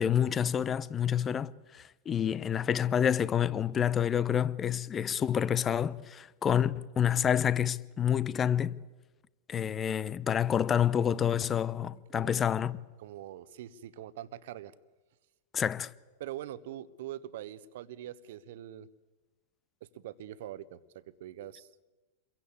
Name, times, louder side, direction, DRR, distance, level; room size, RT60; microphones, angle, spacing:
voice 1, 0.0-8.8 9.5-12.8 15.5-15.9, left 9 dB, 25° left, 0.9 m, -28 dB
voice 2, 12.1-12.5 13.0-14.7 16.2-18.9 19.9-21.7, right 12 dB, 55° right, 1.3 m, -43 dB
28.5 x 22.5 x 8.5 m
figure-of-eight pair, 90°, 0 cm